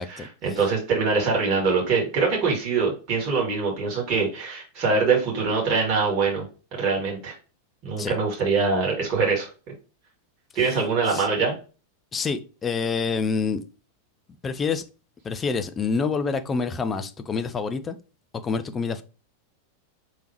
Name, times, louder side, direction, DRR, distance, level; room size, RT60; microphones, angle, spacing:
voice 1, 0.0-6.4 6.8-7.4 7.8-9.5 10.6-11.5, right 4 dB, 40° right, 1.9 m, -23 dB
voice 2, 12.1-13.6 14.4-14.8 15.2-18.0 18.4-19.0, left 5 dB, 20° left, 0.5 m, -27 dB
4.6 x 3.5 x 2.9 m
figure-of-eight pair, 90°, 0 cm